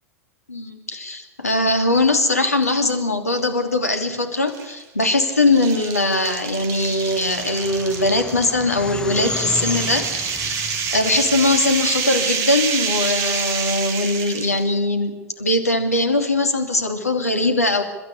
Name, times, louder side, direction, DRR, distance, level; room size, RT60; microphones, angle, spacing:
voice 1, 0.5-10.5 10.9-17.8, left 2 dB, 80° left, 6 dB, 2.9 m, -21 dB
sound 1, 2.5-2.9 3.4-3.5 4.5-14.6, right 6 dB, 40° right, 3.1 m, -27 dB
sound 2, 6.6-12.0, left 3 dB, 10° left, 1.3 m, -33 dB
30.0 x 13.5 x 8.6 m, 1.1 s
figure-of-eight pair, 95°, 8 cm